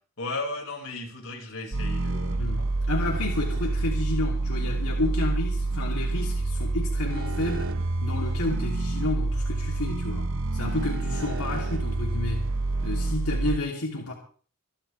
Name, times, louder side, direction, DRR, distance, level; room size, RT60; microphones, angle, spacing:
voice 1, 0.2-2.7, left 2 dB, 65° left, 5.7 m, -35 dB
sound 1, 1.7-13.6, right 2 dB, 60° right, 0.9 m, -28 dB
voice 2, 2.4-12.5 12.8-14.1, left 2 dB, 90° left, 3.1 m, -31 dB
26.5 x 11.5 x 3.4 m
head